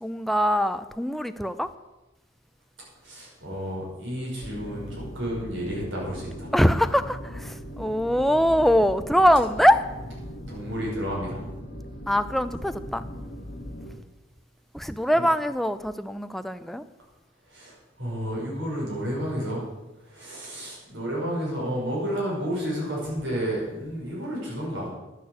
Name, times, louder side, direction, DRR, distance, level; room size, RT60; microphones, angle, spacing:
voice 1, 0.0-1.7 6.5-9.8 12.1-13.1 14.7-16.8, equal, ahead, 0.5 m, -23 dB
voice 2, 3.0-6.5 10.5-11.4 15.1-15.3 17.5-19.6 20.0-24.9, equal, 90° right, 5.8 m, -31 dB
sound 1, 4.4-14.0, equal, 40° left, 1.7 m, -39 dB
11.5 x 8.4 x 8.1 m
head